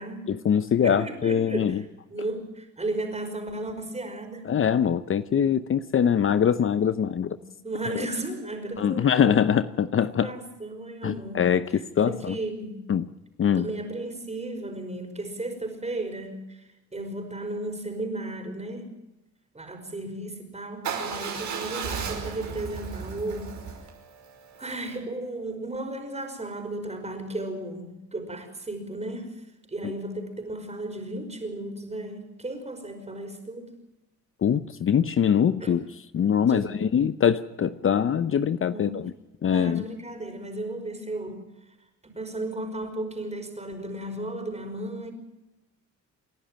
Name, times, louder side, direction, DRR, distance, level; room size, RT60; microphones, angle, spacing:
voice 1, 0.3-1.8 4.5-7.4 8.8-10.3 11.0-11.7 12.0-12.3 12.9-13.0 13.4-13.6 29.8-29.9 34.4-35.8 36.1-39.1 39.4-39.8, left 8 dB, 45° left, 13 dB, 0.7 m, -23 dB
voice 2, 0.8-4.4 7.1-9.4 10.0-11.4 11.7-12.8 13.5-16.6 16.9-18.9 19.5-23.6 24.6-29.3 29.7-33.7 35.6-35.8 36.4-36.9 38.7-39.1 39.5-41.4 42.0-45.1, right 2 dB, 20° right, 5 dB, 5.4 m, -35 dB
Motorcycle / Engine starting / Idling, 20.8-24.9, right 6 dB, 70° right, 5.5 m, -35 dB
29.0 x 11.0 x 9.1 m, 0.98 s
cardioid pair, 90°, 30 cm